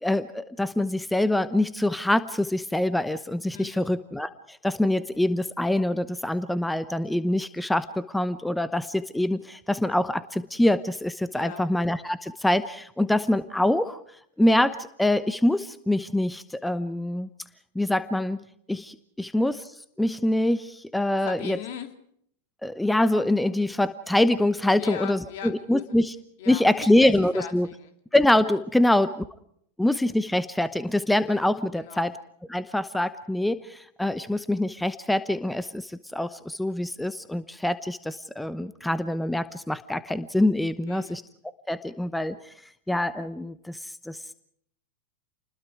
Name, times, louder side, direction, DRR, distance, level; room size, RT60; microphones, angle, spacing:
voice 1, 0.0-14.0 14.4-17.3 17.7-18.4 18.7-19.7 20.0-21.6 22.6-26.2 26.5-27.7 28.1-29.2 29.8-32.1 32.5-41.2 41.7-42.5 42.9-43.8 44.1-44.3, left 1 dB, 5° left, 14 dB, 0.9 m, -25 dB
voice 2, 3.5-3.8 11.3-11.6 21.2-21.9 24.8-26.0 26.4-27.9 28.8-29.0 31.7-32.1 40.9-41.2, left 8 dB, 60° left, 7 dB, 2.9 m, -39 dB
29.0 x 21.0 x 4.8 m, 0.67 s
hypercardioid pair, 100°, 0 cm